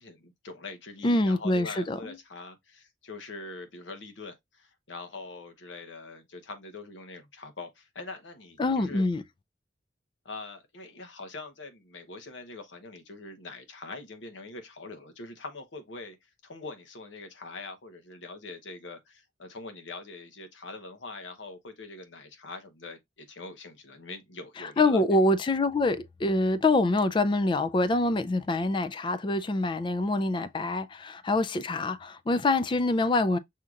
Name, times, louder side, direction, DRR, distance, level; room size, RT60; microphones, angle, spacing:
voice 1, 0.0-9.0 10.2-25.0, left 3 dB, 90° left, 0.9 m, -43 dB
voice 2, 1.0-2.0 8.6-9.2 24.6-33.4, left 2 dB, 25° left, 0.3 m, -25 dB
6.3 x 2.8 x 2.4 m
head